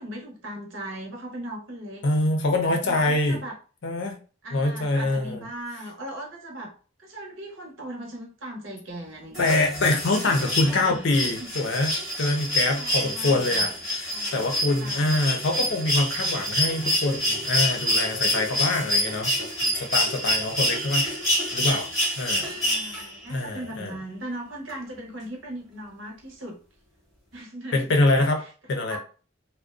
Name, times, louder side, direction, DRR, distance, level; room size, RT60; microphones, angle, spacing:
voice 1, 0.0-2.0 2.6-3.5 4.4-6.7 7.0-9.6 10.4-11.5 12.8-13.7 14.1-14.5 14.8-15.2 22.5-26.6 27.3-28.3 28.9-29.0, right 1 dB, 70° right, 0 dB, 0.8 m, -38 dB
voice 2, 2.0-3.4 3.8-4.2 4.5-5.4 9.4-11.9 12.2-21.1 21.5-21.9 22.2-22.5 22.8-24.0 27.7-28.4 28.7-29.0, left 2 dB, 60° left, 4 dB, 0.5 m, -25 dB
sound 1, 9.3-23.3 24.7-24.8, equal, ahead, 0.8 m, -27 dB
2.4 x 2.1 x 2.4 m, 0.37 s
head